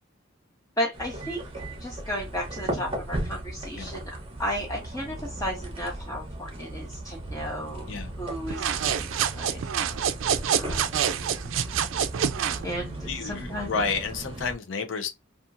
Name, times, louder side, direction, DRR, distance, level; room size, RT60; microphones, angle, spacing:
voice 1, 0.8-1.4 1.8-9.6 10.5-10.9 12.6-13.7, equal, 20° left, 0.6 m, -34 dB
sound 1, 0.9-14.5, right 1 dB, 30° right, 0.7 m, -37 dB
voice 2, 7.9-8.2 13.1-15.1, left 5 dB, 75° left, 0.5 m, -31 dB
sound 2, 8.5-12.7, right 8 dB, 90° right, 0.3 m, -27 dB
2.8 x 2.4 x 2.4 m
head